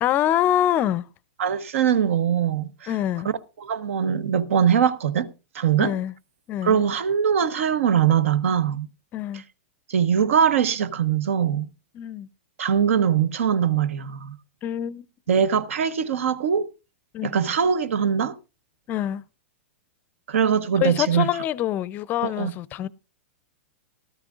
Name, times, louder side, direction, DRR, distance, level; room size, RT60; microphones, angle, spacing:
voice 1, 0.0-1.1 2.9-3.3 5.8-6.1 6.5-6.8 9.1-9.4 11.9-12.3 14.6-15.1 17.1-17.4 18.9-19.2 20.8-22.9, left 12 dB, 25° left, 0.5 m, -25 dB
voice 2, 1.4-2.9 3.6-5.3 5.5-6.0 6.6-8.9 9.9-11.7 12.6-14.4 15.3-16.7 17.2-18.4 20.3-21.3 22.2-22.5, right 8 dB, 75° right, 1.0 m, -22 dB
17.5 x 13.0 x 2.4 m
hypercardioid pair, 145°, 7 cm